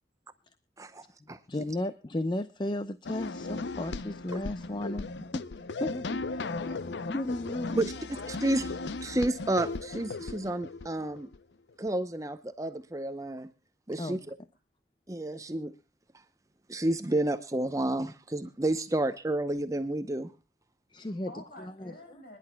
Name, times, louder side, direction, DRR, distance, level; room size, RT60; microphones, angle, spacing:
voice 1, 0.8-1.4 7.8-7.9 8.3-8.7 9.0-11.3 11.8-13.5 13.9-14.3 15.1-15.7 16.7-20.3, right 1 dB, 20° right, 10 dB, 0.7 m, -30 dB
voice 2, 1.5-5.1 5.3-6.4 7.1-7.8 14.0-14.2 20.9-21.9, left 1 dB, 25° left, 12 dB, 0.5 m, -34 dB
sound 1, 3.0-11.4, left 3 dB, 75° left, 0.6 m, -37 dB
voice 3, 6.4-7.0 7.6-8.4 21.3-22.4, left 1 dB, 55° left, 4 dB, 5.6 m, -49 dB
26.0 x 11.0 x 2.2 m, 0.28 s
head